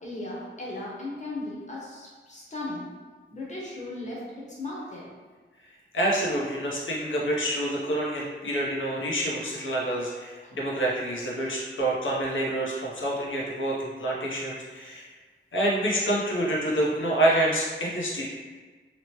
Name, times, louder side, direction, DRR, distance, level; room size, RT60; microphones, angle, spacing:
voice 1, 0.0-2.9 3.3-5.1 10.4-10.5, left 2 dB, 35° left, -5 dB, 0.9 m, -36 dB
voice 2, 5.9-15.1 15.5-18.3, right 1 dB, 70° left, -3 dB, 0.7 m, -27 dB
2.9 x 2.0 x 2.9 m, 1.4 s
wide cardioid pair, 95°, 21 cm